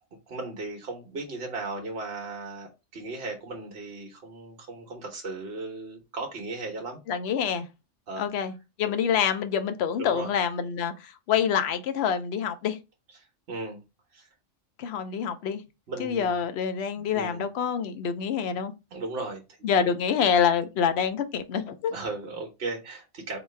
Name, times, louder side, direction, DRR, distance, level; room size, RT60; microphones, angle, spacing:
voice 1, 0.3-7.0 8.1-8.3 8.9-9.0 10.0-10.3 13.1-13.8 14.1-14.3 15.9-16.4 17.0-17.5 18.9-20.0 21.9-23.4, right 3 dB, 55° right, 1.2 m, -36 dB
voice 2, 7.1-7.7 8.2-8.5 8.8-12.8 14.8-15.6 16.0-18.7 19.6-21.9, left 7 dB, 65° left, 0.8 m, -26 dB
3.8 x 3.1 x 3.2 m
omnidirectional pair, 1.3 m